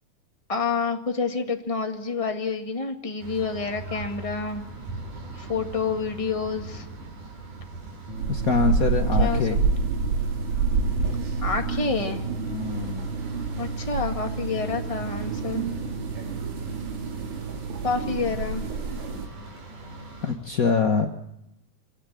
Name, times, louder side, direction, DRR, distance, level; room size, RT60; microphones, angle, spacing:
voice 1, 0.5-4.6 5.4-6.8 9.2-9.4 11.4-12.2 13.6-15.6 17.8-18.6, left 4 dB, 15° left, 4 dB, 1.3 m, -28 dB
sound 1, 3.2-20.3, right 3 dB, 90° right, 7.4 m, -42 dB
sound 2, 8.1-18.7, right 4 dB, 50° right, 4.8 m, -35 dB
sound 3, 8.2-19.3, right 4 dB, 70° right, 3.9 m, -28 dB
voice 2, 8.3-9.6 12.4-13.1 20.2-21.1, left 5 dB, 65° left, 5 dB, 0.8 m, -24 dB
26.0 x 17.0 x 8.5 m, 0.84 s
omnidirectional pair, 3.6 m